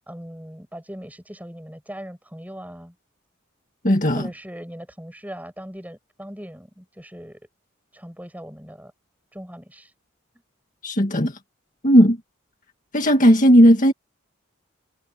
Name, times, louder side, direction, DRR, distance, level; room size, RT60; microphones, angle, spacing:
voice 1, 0.1-3.0 4.1-7.4 7.9-8.9 9.3-9.9, equal, 10° right, 7.2 m, -39 dB
voice 2, 3.8-4.3 10.8-11.3 11.8-12.2 12.9-13.9, equal, 40° left, 2.1 m, -15 dB
head